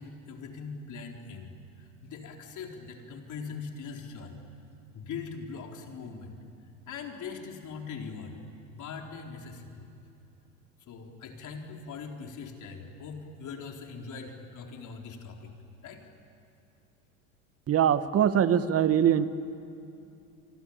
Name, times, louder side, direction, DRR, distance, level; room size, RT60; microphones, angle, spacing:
voice 1, 0.0-4.4 4.9-6.4 6.9-8.4 8.6-9.9 10.8-15.5 15.8-16.0, left 5 dB, 45° left, 2 dB, 4.2 m, -41 dB
voice 2, 17.7-19.3, right 9 dB, 35° right, 13 dB, 1.3 m, -22 dB
27.0 x 24.0 x 8.8 m, 2.7 s
hypercardioid pair, 85°, 42 cm